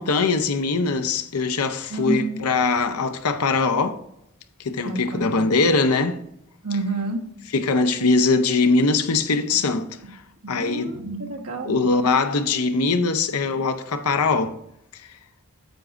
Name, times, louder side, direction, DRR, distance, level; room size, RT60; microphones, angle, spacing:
voice 1, 0.0-4.0 4.6-6.2 7.5-10.2 10.5-11.0 11.6-14.5 14.9-15.1, left 3 dB, 85° left, 0.7 m, -22 dB
voice 2, 1.9-2.4 4.8-5.5 6.6-7.3 10.4-11.8, right 2 dB, 80° right, 1.3 m, -29 dB
9.2 x 8.0 x 2.5 m
head